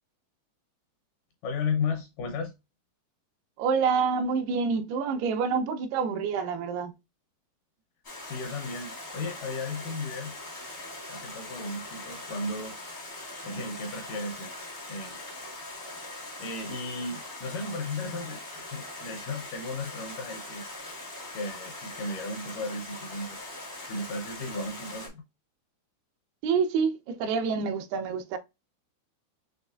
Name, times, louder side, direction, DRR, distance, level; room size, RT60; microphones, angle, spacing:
voice 1, 1.4-2.5 8.2-10.3 11.1-12.7 13.4-14.5 14.9-15.2 16.4-20.6 21.3-23.4 23.9-25.2, left 3 dB, 75° left, 2.0 m, -35 dB
voice 2, 3.6-7.0 26.4-28.4, right 5 dB, 85° right, 2.6 m, -27 dB
Stream, 8.0-25.1, left 2 dB, 55° left, 0.7 m, -41 dB
6.3 x 3.1 x 2.4 m
omnidirectional pair, 4.5 m